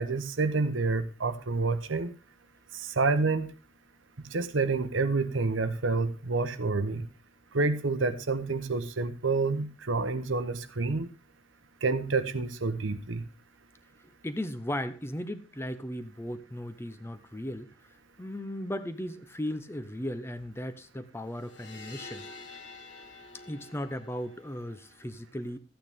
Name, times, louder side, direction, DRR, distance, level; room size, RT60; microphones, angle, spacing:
voice 1, 0.0-2.1 2.7-3.5 4.3-7.1 7.5-11.1 11.8-13.2, right 3 dB, 85° right, 11 dB, 1.0 m, -28 dB
voice 2, 14.0-17.7 18.2-22.2 23.5-25.6, left 1 dB, 15° left, 12 dB, 0.6 m, -36 dB
sound 1, 21.3-25.0, left 3 dB, 65° left, 1.5 m, -48 dB
13.5 x 8.8 x 3.5 m, 0.34 s
head